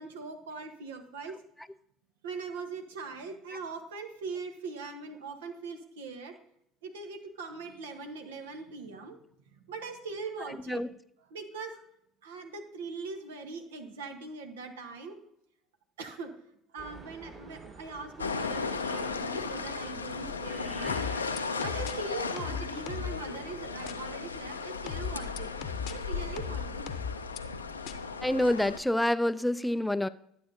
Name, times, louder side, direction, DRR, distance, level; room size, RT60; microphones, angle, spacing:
voice 1, 0.0-1.4 2.2-6.3 6.8-9.2 9.5-10.9 11.3-11.8 12.2-15.2 16.0-16.3 16.7-20.9 21.6-25.5 25.9-26.9, right 4 dB, 75° right, 5 dB, 1.1 m, -41 dB
sound 1, 16.8-24.0, right 3 dB, 40° right, 3.3 m, -50 dB
sound 2, 18.2-28.8, left 4 dB, 90° left, 0.4 m, -36 dB
sound 3, 20.9-21.9 22.4-23.2 23.9-24.0 24.9-25.9 26.4-27.4 27.9-28.0, left 7 dB, 60° left, 0.7 m, -36 dB
voice 2, 28.2-30.1, left 1 dB, 5° left, 16 dB, 0.3 m, -27 dB
11.5 x 8.2 x 2.8 m, 0.74 s
figure-of-eight pair, 60°, 0 cm